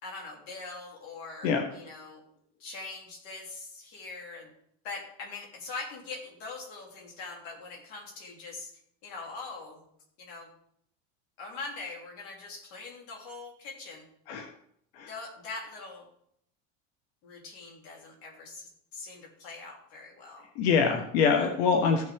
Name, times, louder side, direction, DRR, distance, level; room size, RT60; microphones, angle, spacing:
voice 1, 0.0-2.2 2.6-4.5 4.8-8.7 9.0-9.8 10.2-10.5 11.4-14.0 15.1-16.1 17.2-20.4, left 3 dB, 45° left, -1 dB, 3.1 m, -42 dB
voice 2, 20.6-22.0, left 5 dB, 85° left, 3 dB, 1.4 m, -24 dB
15.0 x 6.3 x 3.5 m, 0.71 s
supercardioid pair, 170°, 32 cm